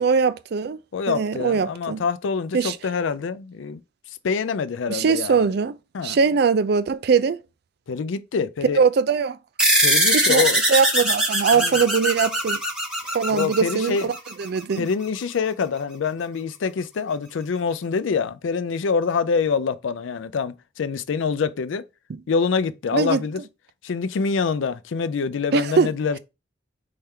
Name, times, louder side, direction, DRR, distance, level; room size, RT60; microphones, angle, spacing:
voice 1, 0.0-0.8 1.1-2.0 2.5-2.8 4.9-5.8 6.0-7.4 8.7-9.4 10.1-10.4 10.7-12.6 13.1-14.9 22.9-23.2 25.5-25.9, right 5 dB, 60° right, 0.4 m, -21 dB
voice 2, 0.9-3.8 4.2-5.5 5.9-6.2 7.9-8.8 9.8-10.6 11.5-11.8 13.3-14.1 14.8-21.8 22.3-23.4 23.8-26.2, left 5 dB, 85° left, 0.4 m, -25 dB
sound 1, 9.6-14.5, right 1 dB, 5° right, 1.5 m, -21 dB
4.2 x 3.3 x 3.6 m
head